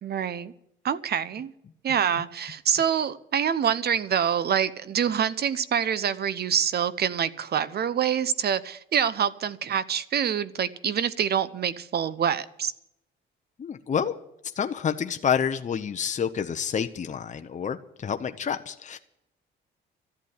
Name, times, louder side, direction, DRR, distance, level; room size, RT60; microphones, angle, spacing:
voice 1, 0.0-0.5 0.8-1.5 1.8-12.7, right 8 dB, 55° right, 0.8 m, -26 dB
voice 2, 13.6-14.2 14.6-19.0, left 7 dB, 40° left, 0.9 m, -28 dB
13.5 x 8.4 x 9.7 m
cardioid pair, 90°, 20 cm